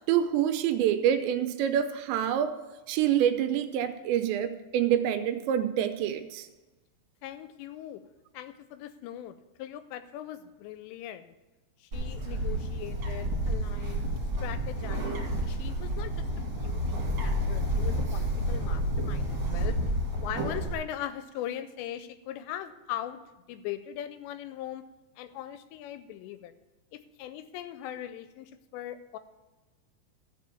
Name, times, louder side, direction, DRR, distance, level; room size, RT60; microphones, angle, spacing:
voice 1, 0.0-2.6 2.9-6.5, right 10 dB, 80° right, 8 dB, 2.9 m, -26 dB
voice 2, 7.2-8.0 8.3-11.3 11.8-14.0 14.4-19.8 20.2-23.2 23.5-24.8 25.2-26.5 26.9-29.2, left 11 dB, 85° left, 12 dB, 2.6 m, -40 dB
Bird, 11.9-20.7, equal, 35° right, 2.3 m, -30 dB
13.5 x 5.1 x 6.9 m, 1.1 s
omnidirectional pair, 5.2 m